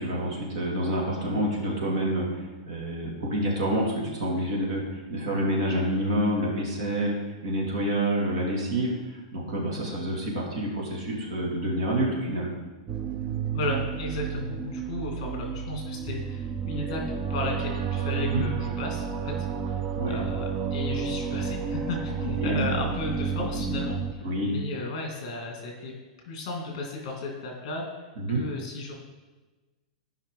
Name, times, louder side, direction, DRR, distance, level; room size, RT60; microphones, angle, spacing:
voice 1, 0.0-7.1 7.4-8.9 9.3-12.5 18.2-18.4 20.0-20.2 22.4-22.8 24.2-24.5 28.2-28.4, right 1 dB, 50° right, -2 dB, 2.4 m, -28 dB
sound 1, 12.9-24.1, right 7 dB, 20° right, 0.4 m, -31 dB
voice 2, 13.5-17.0 17.3-19.3 19.7-19.8 20.1-26.0 26.3-28.9, left 2 dB, 40° left, 0 dB, 2.3 m, -34 dB
14.0 x 5.5 x 3.8 m, 1.2 s
supercardioid pair, 175°, 4 cm